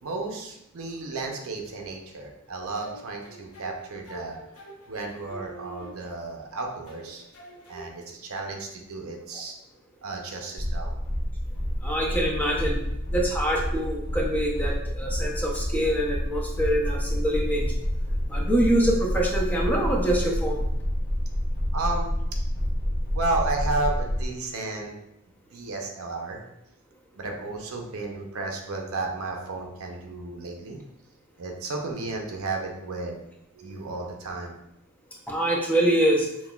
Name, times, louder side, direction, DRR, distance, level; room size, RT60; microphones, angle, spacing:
voice 1, 0.0-4.4 4.9-7.2 7.7-9.5 10.0-10.9 21.7-22.1 23.1-25.0 25.5-26.4 27.2-30.8 31.4-33.2 33.5-34.6, right 3 dB, 70° right, 2 dB, 0.6 m, -33 dB
sound 1, 2.8-6.4 6.9-7.9, right 2 dB, 70° left, 0.7 m, -46 dB
sound 2, 10.6-24.3, equal, 55° left, 1.2 m, -28 dB
voice 2, 11.8-17.7 18.3-20.7 35.3-36.3, right 1 dB, 10° left, -2 dB, 0.5 m, -25 dB
5.7 x 2.3 x 2.3 m, 0.82 s
head